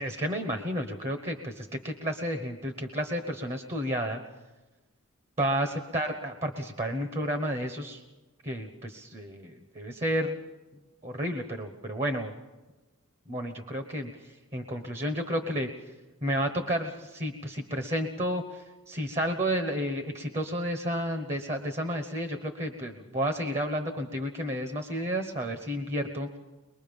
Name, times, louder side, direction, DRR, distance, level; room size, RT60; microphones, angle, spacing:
voice 1, 0.0-4.2 5.4-8.0 8.4-10.4 11.0-12.3 13.3-15.7 16.2-26.4, equal, 30° right, 6 dB, 1.2 m, -31 dB
23.0 x 22.0 x 5.3 m, 1.2 s
head